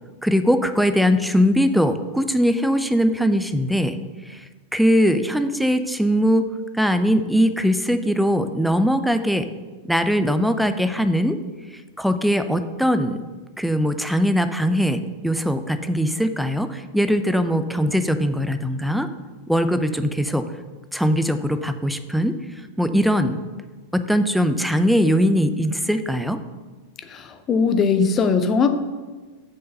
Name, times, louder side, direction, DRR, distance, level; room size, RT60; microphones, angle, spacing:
voice 1, 0.2-4.0 4.3-4.4 4.7-6.5 6.7-9.5 9.8-11.4 12.0-13.2 13.6-19.1 19.5-20.5 20.9-22.4 22.8-23.4 23.9-26.4, equal, ahead, 10 dB, 0.6 m, -21 dB
voice 2, 27.0-28.7, left 5 dB, 25° left, 9 dB, 0.8 m, -20 dB
7.4 x 5.5 x 6.7 m, 1.3 s
figure-of-eight pair, 90°, 0 cm